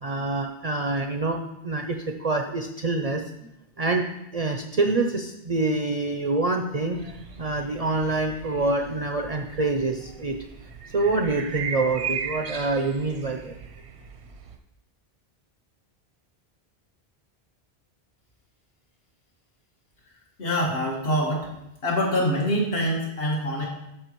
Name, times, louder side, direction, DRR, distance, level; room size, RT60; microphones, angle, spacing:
voice 1, 0.0-1.4 1.6-3.2 3.8-4.0 4.3-10.3 10.9-13.5, right 3 dB, 45° right, 3 dB, 0.5 m, -26 dB
sound 1, 6.9-14.6, right 6 dB, 85° right, 1.0 m, -37 dB
voice 2, 20.4-21.5 21.8-23.6, equal, 65° left, -3 dB, 2.0 m, -25 dB
12.5 x 5.1 x 3.0 m, 0.85 s
omnidirectional pair, 1.1 m